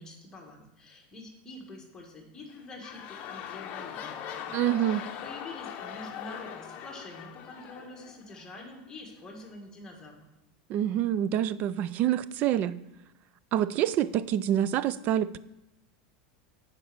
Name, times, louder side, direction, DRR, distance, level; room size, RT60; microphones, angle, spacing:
voice 1, 0.0-10.3, left 2 dB, 15° left, 0 dB, 1.5 m, -46 dB
sound 1, 2.4-8.7 9.4-9.5, left 9 dB, 40° left, 0.8 m, -41 dB
voice 2, 4.5-5.0 10.7-12.8 13.5-15.4, right 11 dB, 35° right, 18 dB, 0.3 m, -26 dB
9.1 x 5.2 x 6.0 m, 0.91 s
supercardioid pair, 150°, 5 cm